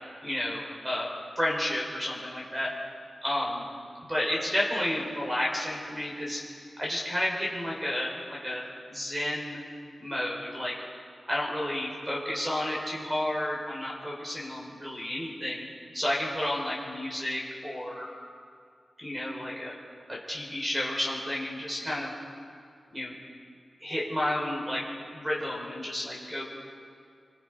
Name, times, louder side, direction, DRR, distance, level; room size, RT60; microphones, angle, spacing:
voice 1, 0.2-1.1 1.4-2.7 3.2-3.6 4.1-6.4 6.8-9.6 10.0-10.7 11.3-15.7 15.9-18.1 19.0-19.7 20.1-22.1 22.9-23.1 23.8-24.8 25.1-26.4, left 1 dB, 15° right, -3 dB, 5.8 m, -31 dB
27.0 x 25.0 x 5.5 m, 2.3 s
wide cardioid pair, 110°, 0 cm